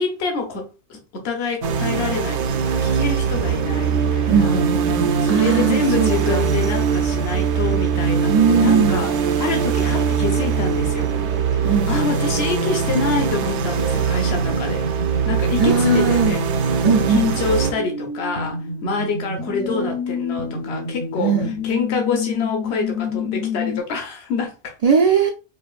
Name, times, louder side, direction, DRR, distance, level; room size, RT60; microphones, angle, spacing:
voice 1, 0.0-4.6 5.2-9.1 9.4-11.1 11.6-14.9 15.3-16.4 17.1-21.4 21.6-24.7, left 4 dB, 60° left, 1.1 m, -26 dB
sound 1, 1.6-17.7, right 6 dB, 75° right, 0.9 m, -21 dB
voice 2, 4.3-6.5 8.3-9.0 11.6-11.9 15.6-16.4 16.8-17.2 19.6-19.9 21.2-21.5 24.8-25.3, right 6 dB, 60° right, 0.4 m, -19 dB
sound 2, 9.9-23.8, left 3 dB, 40° left, 0.6 m, -30 dB
4.7 x 2.5 x 2.4 m
omnidirectional pair, 1.2 m